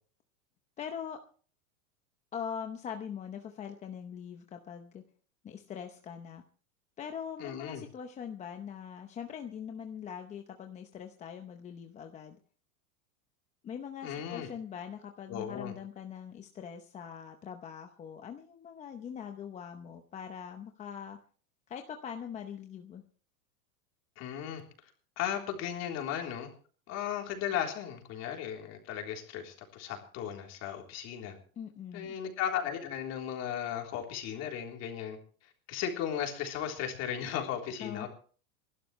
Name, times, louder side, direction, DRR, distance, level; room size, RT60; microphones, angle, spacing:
voice 1, 0.8-1.2 2.3-5.0 5.4-6.4 7.0-12.4 13.6-21.2 21.7-23.0 31.6-32.2 37.8-38.1, left 8 dB, 15° left, 5 dB, 0.8 m, -42 dB
voice 2, 7.4-7.8 14.0-14.5 15.3-15.7 24.2-24.6 25.2-26.5 26.9-31.4 31.9-38.1, left 9 dB, 35° left, 2 dB, 3.6 m, -36 dB
27.5 x 12.0 x 3.2 m, 0.43 s
supercardioid pair, 155°, 46 cm